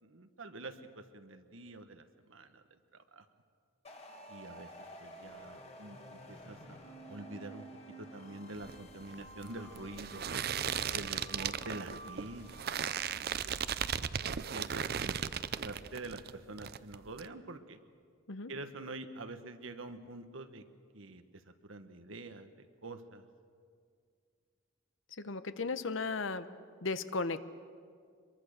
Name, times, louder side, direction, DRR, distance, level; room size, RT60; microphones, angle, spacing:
voice 1, 0.0-2.6 2.9-3.2 4.3-4.7 5.0-7.6 8.0-10.3 10.9-13.6 14.5-15.3 15.6-17.8 18.5-20.6 20.9-23.3, right 2 dB, 75° right, 9 dB, 1.4 m, -46 dB
sound 1, 3.8-13.5, equal, 30° left, 2.0 m, -51 dB
sound 2, 8.6-16.3 16.6-17.2, right 8 dB, 50° right, 0.5 m, -36 dB
voice 2, 25.2-26.5 26.8-27.4, left 3 dB, 70° left, 12 dB, 0.9 m, -35 dB
24.5 x 23.0 x 6.7 m, 2.1 s
head